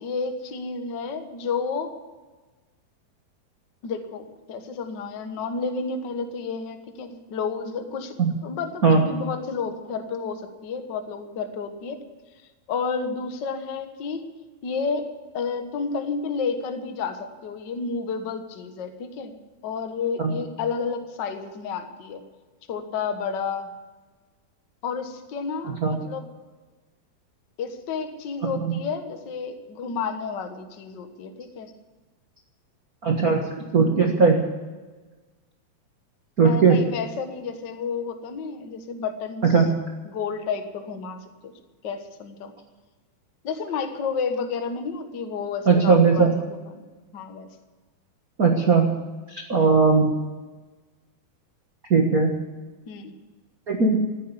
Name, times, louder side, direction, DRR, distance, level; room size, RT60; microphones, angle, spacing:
voice 1, 0.0-1.9 3.8-8.1 8.4-12.0 12.7-14.3 14.6-15.1 15.3-19.4 19.6-22.2 22.7-23.7 24.8-26.3 27.6-31.7 36.4-39.7 40.0-41.5 41.8-42.5 43.4-47.5 49.5-49.7 52.9-53.1, left 5 dB, 65° left, 7 dB, 1.1 m, -31 dB
voice 2, 25.7-26.0 33.0-33.4 33.7-34.4 36.4-36.8 39.4-39.7 45.7-46.4 48.4-48.9 49.3-50.1 51.9-52.4 53.7-54.0, right 4 dB, 75° right, 1 dB, 0.8 m, -18 dB
15.5 x 9.4 x 9.8 m, 1.3 s
omnidirectional pair, 4.2 m